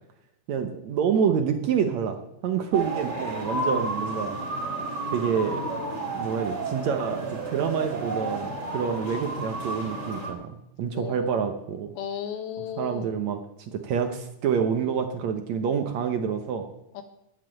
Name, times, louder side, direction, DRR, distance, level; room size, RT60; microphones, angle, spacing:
voice 1, 0.5-2.2 2.4-4.4 5.1-5.6 6.1-11.9 12.8-16.7, right 7 dB, 70° right, 6 dB, 1.8 m, -27 dB
sound 1, 2.7-10.3, right 2 dB, 40° right, 3.8 m, -31 dB
voice 2, 10.9-11.4 11.9-13.2 16.9-17.0, left 8 dB, 80° left, 7 dB, 3.2 m, -35 dB
11.0 x 10.0 x 8.9 m, 0.84 s
omnidirectional pair, 4.3 m